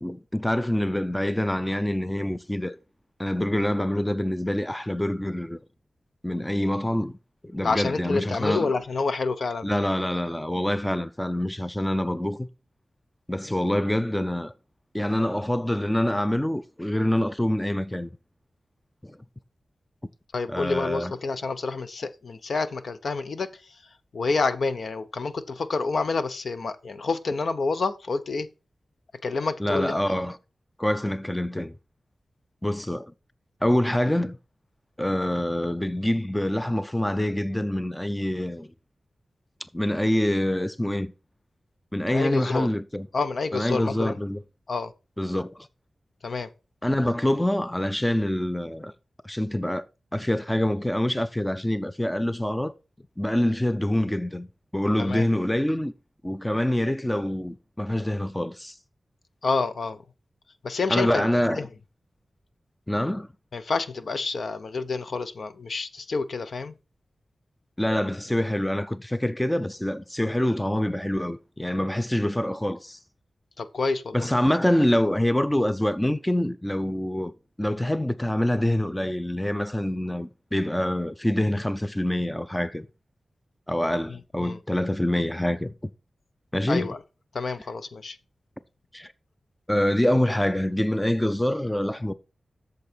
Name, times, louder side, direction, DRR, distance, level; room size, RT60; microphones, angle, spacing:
voice 1, 0.0-2.8 3.2-5.6 6.2-7.1 7.4-8.7 9.6-12.5 13.3-14.5 14.9-18.1 19.0-19.2 20.5-21.1 29.6-30.4 30.8-31.8 32.6-33.1 33.6-34.4 35.0-38.7 39.7-41.1 41.9-43.1 43.5-44.4 45.2-45.7 46.8-48.9 49.2-49.9 50.1-52.7 53.2-54.5 54.7-55.9 56.2-58.7 60.9-61.6 62.9-63.3 67.8-73.0 74.1-77.3 77.6-82.9 83.7-85.7 86.5-86.9 88.9-89.1 89.7-92.1, left 1 dB, 10° left, 0.5 m, -25 dB
voice 2, 7.6-9.7 20.3-23.8 24.1-28.5 29.2-30.0 42.1-42.7 43.1-44.2 44.7-44.9 46.2-46.5 55.0-55.3 59.4-60.0 60.6-61.2 61.5-61.7 63.5-66.7 73.6-74.3 84.1-84.6 86.7-87.0 87.3-88.2, left 4 dB, 65° left, 0.7 m, -28 dB
8.5 x 6.8 x 4.4 m
wide cardioid pair, 120°, 0 cm